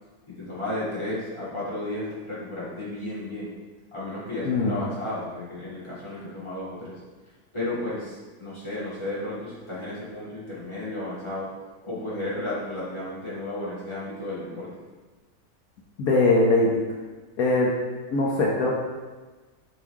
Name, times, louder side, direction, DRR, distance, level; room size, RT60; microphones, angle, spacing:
voice 1, 0.3-3.5 3.9-7.0 7.5-11.5 11.8-14.7, left 1 dB, 20° left, -10 dB, 2.9 m, -33 dB
voice 2, 4.4-4.8 16.0-16.8 17.4-17.7 18.1-18.7, left 2 dB, 70° left, -3 dB, 1.4 m, -21 dB
9.6 x 5.4 x 3.7 m, 1.3 s
omnidirectional pair, 1.6 m